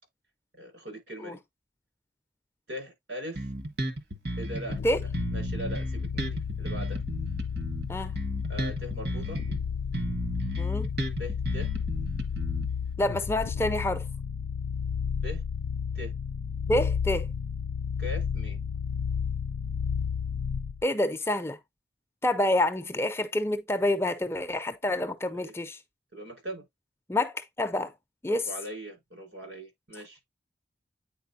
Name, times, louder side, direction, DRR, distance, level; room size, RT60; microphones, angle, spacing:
voice 1, 0.5-1.4 2.7-3.5 4.4-7.0 8.5-9.4 11.2-11.7 15.1-15.4 15.9-16.1 18.0-18.6 25.2-25.5 26.1-26.7 28.3-30.2, equal, 80° right, 5.2 m, -40 dB
Bass guitar, 3.3-4.8 5.1-9.6 9.9-12.9, right 1 dB, 55° right, 1.3 m, -34 dB
sound 1, 4.7-20.8, left 6 dB, 75° left, 0.3 m, -32 dB
voice 2, 10.6-10.9 13.0-14.0 16.7-17.3 20.8-21.6 22.2-25.8 27.1-27.9 28.2-28.4, left 1 dB, 15° left, 0.5 m, -27 dB
9.1 x 4.4 x 2.7 m
head